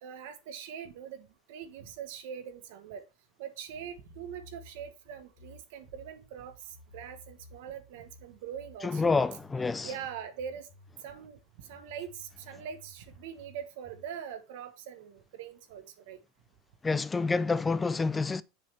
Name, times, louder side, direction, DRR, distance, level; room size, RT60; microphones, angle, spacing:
voice 1, 0.0-3.1 3.4-6.5 6.9-9.1 9.8-10.7 11.0-16.2, right 8 dB, 75° right, 1.2 m, -42 dB
sound 1, 3.7-11.0 11.7-14.2, left 2 dB, 45° left, 1.5 m, -55 dB
voice 2, 8.8-9.9 16.8-18.4, left 4 dB, 15° left, 0.4 m, -28 dB
6.6 x 3.3 x 5.7 m
supercardioid pair, 115°, 0 cm